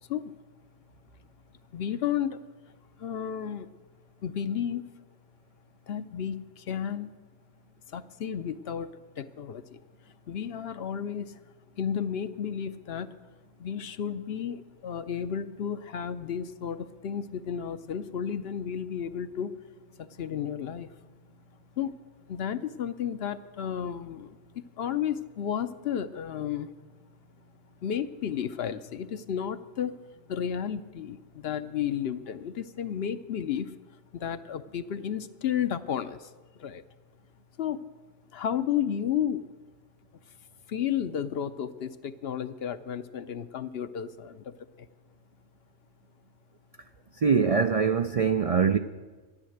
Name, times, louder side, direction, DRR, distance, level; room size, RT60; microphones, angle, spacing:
voice 1, 1.7-2.4 3.0-3.7 4.2-4.8 5.9-7.1 7.9-9.8 10.3-11.4 11.8-13.1 13.6-19.6 20.0-20.9 21.8-22.0 22.3-26.7 27.8-30.0 30.3-33.7 34.1-36.3 36.6-36.8 37.6-37.9 38.3-39.5 40.7-44.9, left 9 dB, 65° left, 0.9 m, -32 dB
voice 2, 47.2-48.8, right 6 dB, 60° right, 0.3 m, -23 dB
13.5 x 11.0 x 7.9 m
omnidirectional pair, 1.2 m